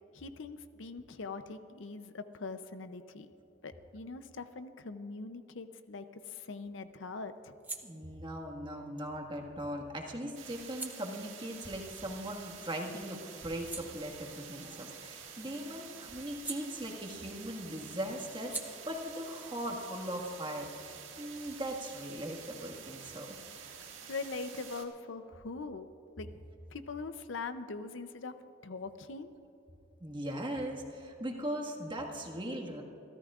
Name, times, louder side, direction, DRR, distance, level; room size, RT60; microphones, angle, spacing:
voice 1, 0.1-3.3 3.6-7.5 23.7-23.8 24.1-25.9 26.2-26.3 26.7-28.4 28.6-29.3, left 4 dB, 70° left, 10 dB, 0.6 m, -42 dB
sound 1, 5.9-12.7 13.1-17.4 17.6-21.0, right 3 dB, 10° right, 0.8 m, -49 dB
voice 2, 7.8-20.9 21.2-23.3 30.0-32.8, equal, 25° right, 1 dB, 1.7 m, -39 dB
sound 2, 10.3-24.8, right 7 dB, 85° right, 1.7 m, -49 dB
28.0 x 13.5 x 2.5 m, 3.0 s
head